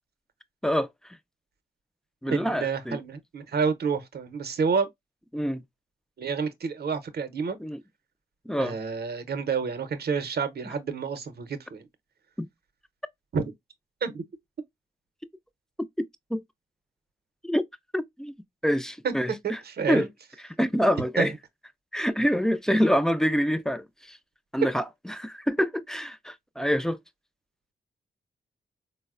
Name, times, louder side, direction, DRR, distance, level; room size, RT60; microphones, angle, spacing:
voice 1, 0.6-1.2 2.2-3.0 5.3-5.6 7.6-7.8 8.5-8.8 10.7-10.8 12.4-12.5 16.3-16.4 17.4-17.6 17.9-18.3 18.6-19.6 19.9-20.1 20.4-21.3 21.9-24.2 24.5-27.0, equal, 5° left, 0.3 m, -26 dB
voice 2, 2.3-4.9 6.2-7.6 8.6-11.9 13.3-13.4 14.0-14.2 19.0-19.1 19.4-20.1 21.2-21.3, right 5 dB, 55° right, 0.7 m, -29 dB
3.9 x 2.0 x 2.4 m
cardioid pair, 70°, 20 cm